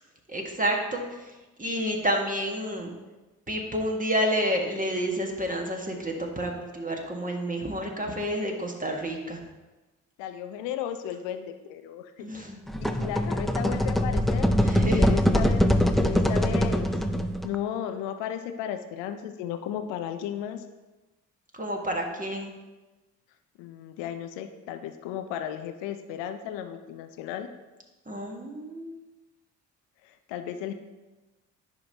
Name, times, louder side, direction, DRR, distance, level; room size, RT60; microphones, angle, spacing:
voice 1, 0.3-1.3 1.6-2.9 3.5-9.4 12.2-12.6 14.6-15.1 21.6-22.5 28.1-29.0, equal, 20° right, 1 dB, 1.5 m, -29 dB
voice 2, 10.2-12.3 12.8-14.5 15.0-15.7 16.0-16.9 17.4-20.6 23.6-27.5 30.0-30.7, left 10 dB, 70° left, 8 dB, 0.6 m, -34 dB
sound 1, 12.7-17.6, equal, ahead, 0.4 m, -23 dB
10.5 x 5.0 x 2.9 m, 1.1 s
hypercardioid pair, 45°, 45 cm